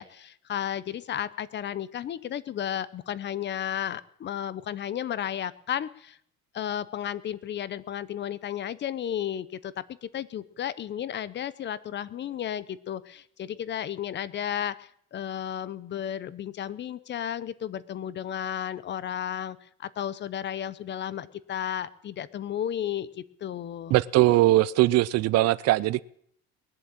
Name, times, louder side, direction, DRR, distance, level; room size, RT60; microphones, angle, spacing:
voice 1, 0.0-6.2 6.5-23.1 23.4-23.9, left 10 dB, 35° left, 0.7 m, -33 dB
voice 2, 23.9-26.0, right 17 dB, 50° right, 0.5 m, -21 dB
20.5 x 7.7 x 8.8 m
cardioid pair, 140°, 32 cm